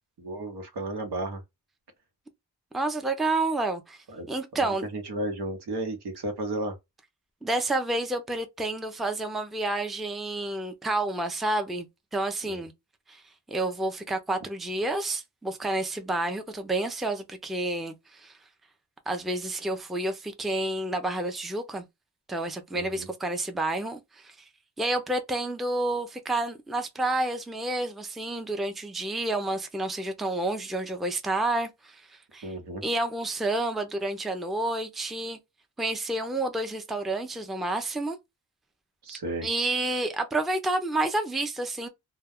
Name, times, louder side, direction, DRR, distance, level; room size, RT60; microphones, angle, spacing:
voice 1, 0.2-1.4 4.1-6.8 12.4-12.6 22.7-23.1 32.4-32.8 39.0-39.5, right 2 dB, 75° right, 1.0 m, -34 dB
voice 2, 2.7-4.9 7.4-11.9 12.1-12.7 13.1-13.2 13.5-18.4 19.1-21.8 22.3-24.4 24.8-32.5 32.8-35.4 35.8-38.2 39.4-41.9, right 2 dB, ahead, 0.4 m, -29 dB
2.2 x 2.2 x 3.4 m
cardioid pair, 80°, 40 cm